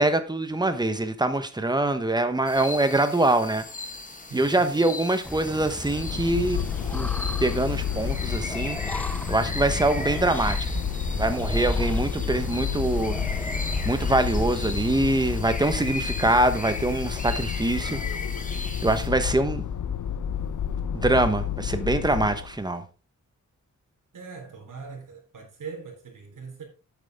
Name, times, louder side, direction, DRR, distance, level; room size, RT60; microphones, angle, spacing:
voice 1, 0.0-3.6 4.3-6.6 6.9-7.1 7.4-8.8 9.3-10.6 11.1-13.2 13.8-18.0 18.8-19.6 20.9-22.8, right 2 dB, 15° right, 1.0 m, -24 dB
sound 1, 2.4-19.1, left 2 dB, 25° left, 1.5 m, -38 dB
voice 2, 4.3-4.8 24.1-26.6, right 5 dB, 75° right, 3.6 m, -41 dB
sound 2, 5.2-15.4, left 1 dB, 5° left, 0.4 m, -33 dB
sound 3, 5.6-22.6, left 8 dB, 70° left, 0.8 m, -31 dB
8.9 x 8.4 x 3.5 m
wide cardioid pair, 145°, 32 cm